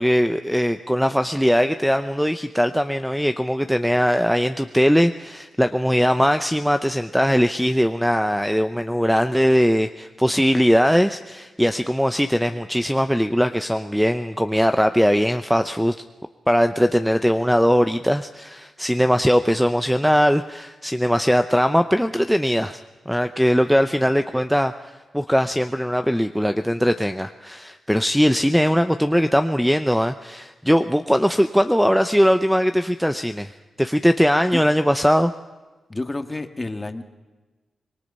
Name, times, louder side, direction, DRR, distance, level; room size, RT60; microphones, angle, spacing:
voice 1, 0.0-16.0 16.5-22.8 23.1-33.5 33.8-35.3, equal, ahead, 9 dB, 0.7 m, -20 dB
voice 2, 35.9-37.0, left 2 dB, 25° left, 8 dB, 1.7 m, -29 dB
25.5 x 20.0 x 5.5 m, 1.2 s
cardioid pair, 85°, 0 cm